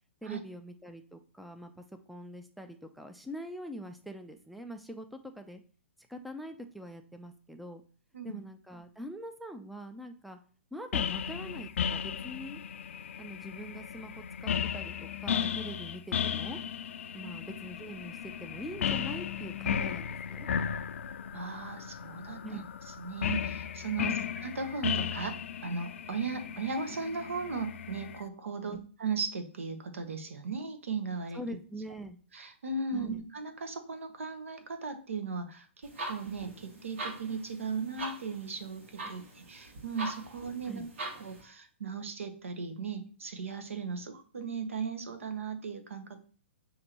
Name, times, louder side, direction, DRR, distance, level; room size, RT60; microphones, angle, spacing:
voice 1, 0.2-5.6 6.1-7.8 8.2-10.4 10.7-12.6 13.2-16.6 17.1-20.5 22.4-22.7 24.0-24.3 28.6-28.8 31.3-32.2 32.9-33.2 40.6-40.9, equal, ahead, 7 dB, 0.3 m, -43 dB
sound 1, 10.9-28.2, left 8 dB, 80° left, 0.3 m, -35 dB
voice 2, 21.3-22.6 23.0-24.1 24.4-25.4 25.6-31.4 32.3-40.8 41.2-46.2, right 4 dB, 90° right, 8 dB, 0.9 m, -37 dB
sound 2, 35.8-41.4, right 2 dB, 75° right, 1.6 m, -42 dB
6.4 x 2.6 x 2.9 m, 0.41 s
hypercardioid pair, 140°, 7 cm